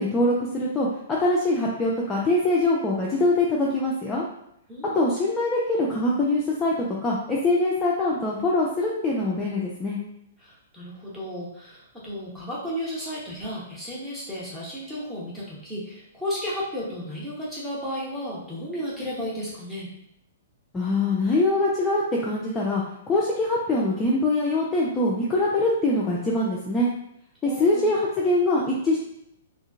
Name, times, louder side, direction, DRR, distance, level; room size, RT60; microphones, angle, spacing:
voice 1, 0.0-4.2 4.9-6.7 7.0-10.0 20.7-26.9 27.4-29.0, left 2 dB, 15° left, -5 dB, 0.4 m, -23 dB
voice 2, 4.7-5.1 10.4-19.9 27.4-28.0, equal, 5° right, -8 dB, 1.0 m, -33 dB
2.7 x 2.4 x 2.5 m, 0.76 s
figure-of-eight pair, 110°, 0 cm